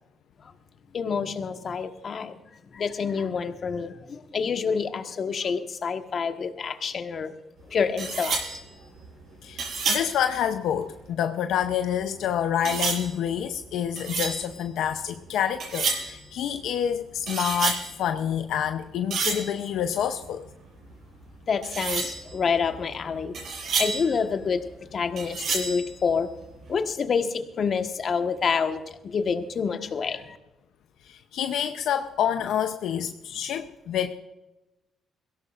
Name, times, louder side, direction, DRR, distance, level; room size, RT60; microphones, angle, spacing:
voice 1, 0.9-2.4 2.7-7.3 7.7-8.4 21.5-23.3 23.8-26.3 26.7-30.4, left 5 dB, 50° left, 6 dB, 1.4 m, -27 dB
sound 1, 7.6-7.7 8.0-11.1 11.5-12.1 12.6-15.2 15.5-16.2 16.6-18.3 18.6-20.6 20.8-21.0 21.2-21.4 21.6-24.9 25.2-26.7, right 4 dB, 65° right, 6.7 m, -30 dB
voice 2, 9.9-20.4 31.1-34.1, left 9 dB, 80° left, 7 dB, 0.7 m, -27 dB
22.5 x 17.0 x 2.5 m, 1.0 s
cardioid pair, 90°, 0 cm